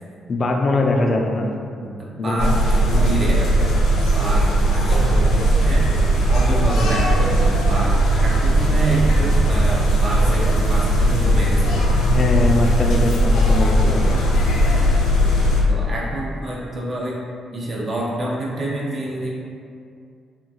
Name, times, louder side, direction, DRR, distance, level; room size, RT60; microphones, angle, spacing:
voice 1, 0.3-1.5 2.2-2.5 12.1-14.2, left 2 dB, 45° left, 2 dB, 0.3 m, -21 dB
voice 2, 1.8-2.6 2.8-3.5 4.1-5.9 6.3-12.1 15.4-17.2 17.5-19.3, right 1 dB, 45° right, -4 dB, 0.5 m, -27 dB
sound 1, 2.4-15.6, right 1 dB, 85° left, 0.6 m, -17 dB
3.6 x 2.3 x 2.7 m, 2.4 s
cardioid pair, 90°, 0 cm